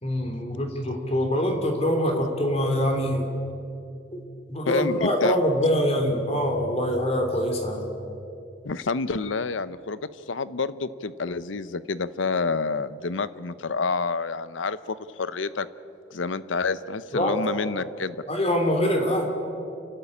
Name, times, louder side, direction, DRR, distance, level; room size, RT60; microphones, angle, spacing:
voice 1, 0.0-3.3 4.1-4.2 4.5-7.9 17.1-17.4 18.3-19.2, equal, 35° left, 3 dB, 2.9 m, -24 dB
voice 2, 4.7-5.3 8.6-15.7 16.1-18.2, left 4 dB, 90° left, 15 dB, 0.7 m, -28 dB
29.0 x 12.5 x 8.6 m, 2.7 s
head